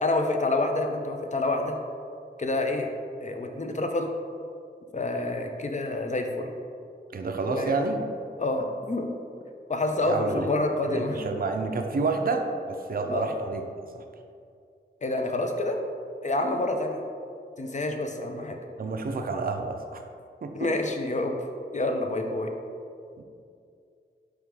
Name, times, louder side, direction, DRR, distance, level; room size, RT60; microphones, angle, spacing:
voice 1, 0.0-1.8 2.4-2.9 3.2-4.1 4.9-6.5 7.4-7.7 8.4-9.1 9.7-11.3 13.1-13.3 15.0-15.8 16.2-17.0 17.6-18.6 20.5-21.4 21.7-22.5, left 2 dB, 35° left, 4 dB, 0.5 m, -28 dB
voice 2, 7.1-8.0 10.0-10.5 10.9-13.6 14.0-14.1 18.8-20.0 20.4-20.7 23.2-23.3, right 3 dB, 50° right, 5 dB, 0.4 m, -29 dB
4.6 x 3.3 x 3.5 m, 2.4 s
cardioid pair, 45°, 20 cm